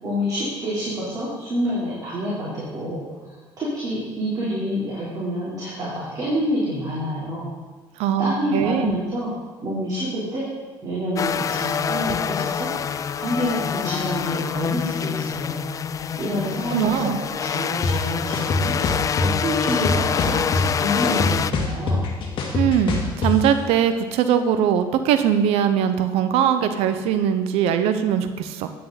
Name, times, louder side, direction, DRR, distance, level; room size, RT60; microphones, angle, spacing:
voice 1, 0.0-7.5 8.2-9.3 9.6-10.5 10.8-12.7 13.1-15.6 16.2-17.1 17.4-18.7 19.2-22.0, equal, 35° right, -8 dB, 3.9 m, -27 dB
voice 2, 8.0-9.0 16.7-17.2 22.5-28.7, right 8 dB, 80° right, 9 dB, 0.8 m, -21 dB
sound 1, 11.2-21.5, left 7 dB, 30° left, 0.4 m, -26 dB
sound 2, 17.8-17.9 18.3-19.3 19.7-20.7 21.0-23.3, left 3 dB, 50° left, 2.2 m, -23 dB
10.5 x 9.3 x 4.1 m, 1.4 s
cardioid pair, 100°, 10 cm